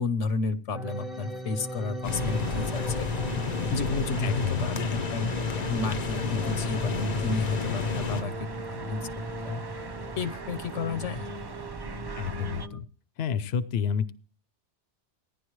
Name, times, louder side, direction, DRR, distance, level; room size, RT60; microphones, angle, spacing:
voice 1, 0.0-3.1 3.7-5.3 5.7-9.1 9.4-9.6 10.2-11.3, left 4 dB, 85° left, 11 dB, 1.3 m, -31 dB
sound 1, 0.7-12.8, equal, ahead, 0.8 m, -39 dB
sound 2, 2.0-8.2, left 5 dB, 45° left, 0.7 m, -31 dB
sound 3, 2.1-12.7, right 3 dB, 35° right, 0.4 m, -39 dB
voice 2, 4.2-4.7 12.2-12.8 13.2-14.1, left 7 dB, 65° left, 13 dB, 0.9 m, -29 dB
16.0 x 10.5 x 3.1 m, 0.40 s
omnidirectional pair, 1.2 m